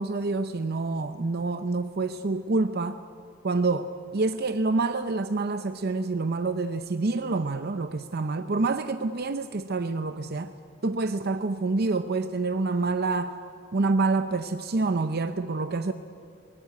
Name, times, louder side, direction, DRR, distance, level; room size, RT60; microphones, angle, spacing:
voice 1, 0.0-3.0 3.4-10.5 10.8-13.3 13.7-15.9, right 3 dB, 50° right, 10 dB, 0.7 m, -27 dB
21.5 x 18.5 x 9.4 m, 2.6 s
head